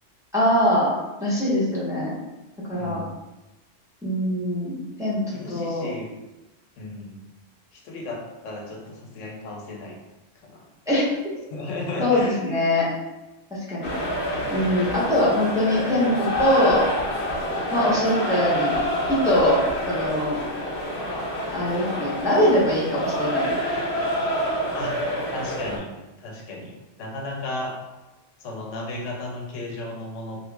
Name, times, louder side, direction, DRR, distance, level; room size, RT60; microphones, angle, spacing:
voice 1, 0.3-0.9 1.2-2.1 2.7-3.0 4.0-5.9 10.9-11.1 12.0-12.9 13.7-13.9 14.5-16.8 17.7-18.7 19.1-19.6 19.9-20.4 21.5-23.6, left 1 dB, 5° right, -8 dB, 0.8 m, -22 dB
voice 2, 2.7-3.1 5.3-6.1 6.8-7.2 7.7-10.0 10.4-10.7 11.5-12.4 24.7-25.0 25.3-25.9 26.2-26.7 27.0-27.7 28.4-30.4, left 2 dB, 85° left, 0 dB, 1.0 m, -34 dB
sound 1, 13.8-25.8, equal, 65° left, 0.9 m, -27 dB
3.1 x 2.4 x 3.3 m, 1.0 s
omnidirectional pair, 1.3 m